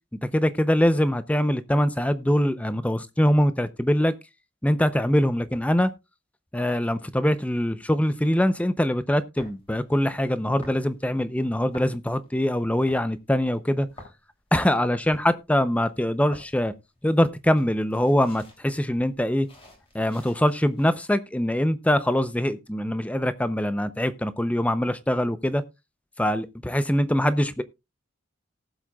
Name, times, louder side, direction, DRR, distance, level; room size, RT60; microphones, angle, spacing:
voice 1, 0.2-4.1 4.6-5.9 6.5-13.9 14.5-16.7 17.0-19.5 19.9-25.6 26.2-27.6, equal, 5° left, 0.5 m, -23 dB
sound 1, 9.4-20.9, left 1 dB, 25° left, 2.9 m, -51 dB
18.5 x 7.5 x 2.3 m
head